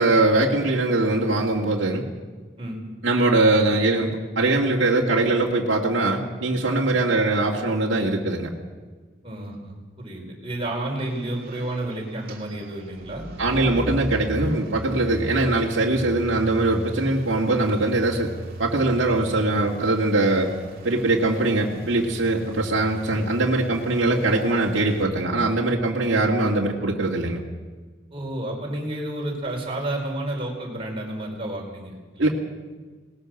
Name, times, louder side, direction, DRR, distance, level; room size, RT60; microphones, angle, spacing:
voice 1, 0.0-2.0 3.0-8.5 13.4-18.3 18.6-20.5 20.8-27.4 32.2-32.3, right 2 dB, 75° right, -3 dB, 2.3 m, -22 dB
voice 2, 9.2-13.8 28.1-32.3, right 1 dB, 30° right, -1 dB, 5.0 m, -31 dB
sound 1, 11.0-25.0, right 1 dB, 50° right, 2.5 m, -38 dB
20.5 x 19.5 x 6.5 m, 1.4 s
head